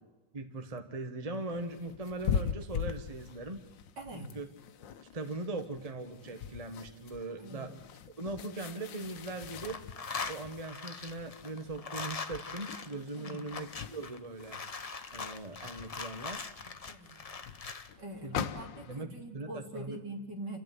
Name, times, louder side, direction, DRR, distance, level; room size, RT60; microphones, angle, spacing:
voice 1, 0.3-3.6 4.1-4.5 5.1-7.8 8.2-9.8 10.3-14.6 15.1-16.5 18.2-18.5 18.8-20.0, right 2 dB, 20° right, 6 dB, 1.4 m, -40 dB
sound 1, 1.3-19.0, left 7 dB, 85° left, 1.6 m, -42 dB
voice 2, 4.0-4.3 7.4-7.7 13.2-13.5 16.9-17.2 18.0-20.6, right 1 dB, 65° right, 1 dB, 3.6 m, -44 dB
sound 2, 8.4-9.2 9.5-17.9, left 4 dB, 35° left, 0.5 m, -42 dB
29.0 x 13.0 x 9.3 m, 1.2 s
omnidirectional pair, 1.9 m